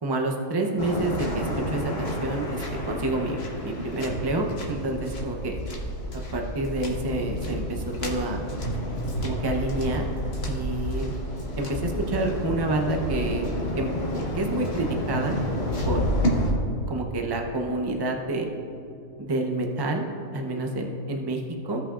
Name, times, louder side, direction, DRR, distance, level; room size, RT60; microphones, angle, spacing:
voice 1, 0.0-2.6 2.9-5.6 6.3-8.4 9.2-10.1 10.5-11.1 11.6-13.5 13.8-13.9 14.3-15.4 15.8-16.1 16.9-18.5 19.2-20.1 20.3-21.8, right 2 dB, 30° right, 1 dB, 0.5 m, -28 dB
Waves surf, 0.8-16.5, equal, 50° left, 1.3 m, -30 dB
16.5 x 5.7 x 2.4 m, 2.9 s
omnidirectional pair, 1.5 m